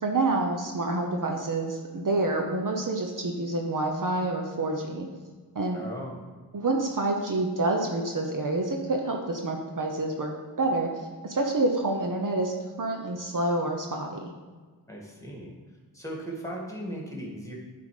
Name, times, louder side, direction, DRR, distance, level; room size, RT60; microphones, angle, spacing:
voice 1, 0.0-5.1 5.5-5.8 6.5-10.3 10.6-14.3, right 2 dB, 50° right, 2 dB, 0.9 m, -28 dB
voice 2, 5.7-6.2 14.9-15.5 15.9-17.6, right 1 dB, 5° left, -2 dB, 1.9 m, -37 dB
9.6 x 3.8 x 5.0 m, 1.4 s
wide cardioid pair, 80°, 41 cm